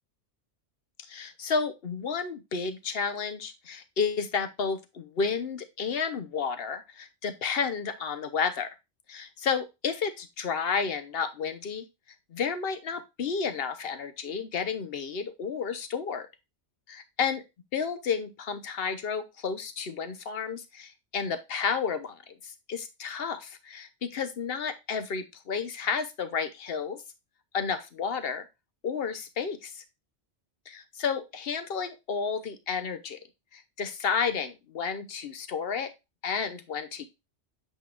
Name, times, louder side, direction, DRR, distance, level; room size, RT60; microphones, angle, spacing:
voice 1, 1.0-8.7 9.1-11.8 12.3-16.3 16.9-17.4 17.7-27.0 27.5-28.5 28.8-29.8 30.7-33.2 33.5-35.9 36.2-37.1, left 6 dB, 60° left, 10 dB, 1.1 m, -31 dB
8.1 x 5.2 x 2.4 m, 0.23 s
omnidirectional pair, 1.2 m